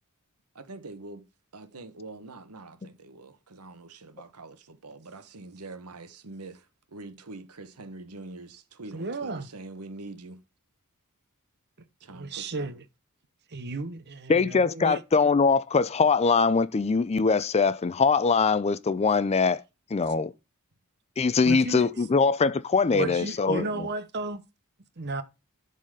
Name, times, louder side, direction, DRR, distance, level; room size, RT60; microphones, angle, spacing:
voice 1, 0.5-1.2 1.5-6.7 6.9-10.4 12.0-12.8, right 2 dB, 90° right, 1.2 m, -44 dB
voice 2, 8.9-9.5 12.1-12.8 13.5-15.0 21.4-21.9 22.9-24.4 25.0-25.2, right 2 dB, 50° right, 1.0 m, -33 dB
voice 3, 14.3-19.6 19.9-20.3 21.2-23.7, left 4 dB, 30° left, 0.4 m, -22 dB
11.5 x 4.1 x 4.9 m
head